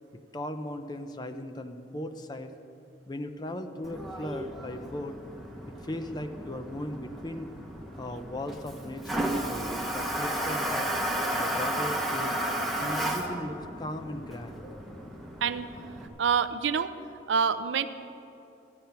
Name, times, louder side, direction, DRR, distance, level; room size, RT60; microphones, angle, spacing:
voice 1, 0.1-2.5 3.1-5.2 5.8-7.5 8.0-11.0 11.3-12.4 12.8-14.6, left 1 dB, 20° left, 8 dB, 0.5 m, -38 dB
Toilet flush, 3.8-16.1, right 1 dB, ahead, 1.0 m, -33 dB
voice 2, 16.2-16.9 17.3-17.9, right 6 dB, 80° right, 12 dB, 0.5 m, -26 dB
13.0 x 9.2 x 5.7 m, 2.8 s
head